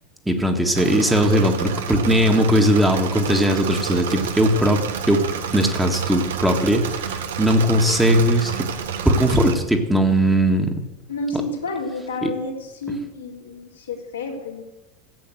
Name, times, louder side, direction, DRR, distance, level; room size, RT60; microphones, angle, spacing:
voice 1, 0.3-5.2 5.5-8.7 9.0-10.7 12.2-12.3, equal, 5° right, 3 dB, 1.8 m, -19 dB
Engine / Mechanisms, 0.7-9.5, right 7 dB, 65° right, 1.3 m, -29 dB
voice 2, 11.1-14.6, left 2 dB, 75° left, -1 dB, 3.2 m, -30 dB
15.0 x 8.4 x 7.8 m, 0.99 s
figure-of-eight pair, 80°, 0 cm